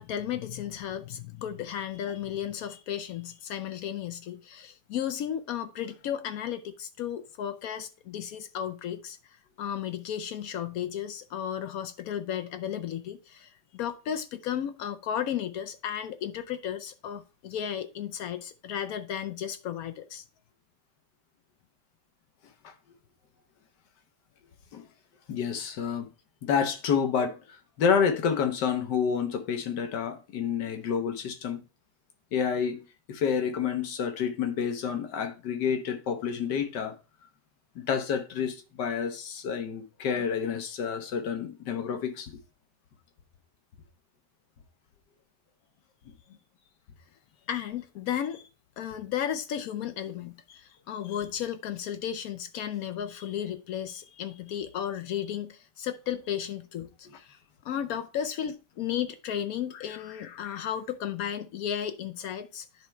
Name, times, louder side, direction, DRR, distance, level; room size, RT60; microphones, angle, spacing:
voice 1, 0.0-9.2 9.6-20.2 47.5-48.4 48.8-57.4 57.6-62.9, left 9 dB, 70° left, 0.9 m, -34 dB
voice 2, 25.3-26.1 26.4-31.6 32.3-32.8 33.1-37.0 37.7-42.3, left 7 dB, 85° left, 1.6 m, -29 dB
10.0 x 3.5 x 4.3 m
omnidirectional pair, 1.8 m